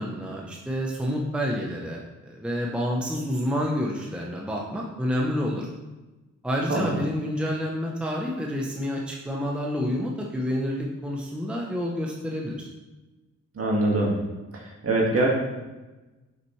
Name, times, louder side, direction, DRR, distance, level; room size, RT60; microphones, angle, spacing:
voice 1, 0.0-5.7 6.4-12.7, equal, 5° right, -2 dB, 0.7 m, -29 dB
voice 2, 6.7-7.1 13.5-14.1 14.5-15.3, right 2 dB, 50° right, -2 dB, 1.8 m, -24 dB
7.4 x 6.2 x 3.1 m, 1.1 s
wide cardioid pair, 140°, 30 cm